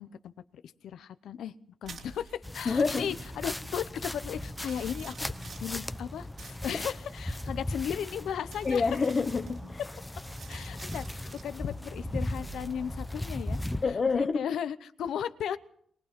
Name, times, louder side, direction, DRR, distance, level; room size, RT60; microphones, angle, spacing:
voice 1, 0.0-1.5 1.8-8.8 10.5-13.6 14.1-15.6, left 9 dB, 85° left, 0.8 m, -36 dB
sound 1, 1.8-14.3, right 4 dB, 50° right, 3.2 m, -50 dB
sound 2, 2.4-13.9, left 1 dB, 5° left, 0.8 m, -38 dB
voice 2, 2.7-3.1 8.6-9.8 13.8-14.4, left 4 dB, 35° left, 0.9 m, -27 dB
22.5 x 19.0 x 6.0 m
wide cardioid pair, 155°, 0 cm